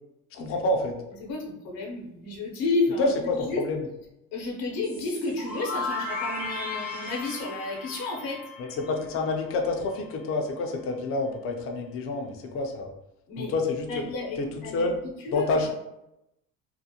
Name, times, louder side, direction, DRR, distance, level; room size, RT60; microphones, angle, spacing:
voice 1, 0.3-1.0 3.0-3.9 8.6-12.9 13.4-13.9 14.4-15.0 15.3-15.7, left 2 dB, 40° left, 2 dB, 0.5 m, -28 dB
voice 2, 1.2-3.6 4.3-8.4 13.3-13.5 13.9-14.9 15.2-15.5, left 3 dB, 70° left, -1 dB, 0.8 m, -31 dB
sound 1, 4.8-9.6, left 3 dB, 5° right, 0.6 m, -35 dB
2.5 x 2.1 x 2.7 m, 0.88 s
cardioid pair, 105°, 36 cm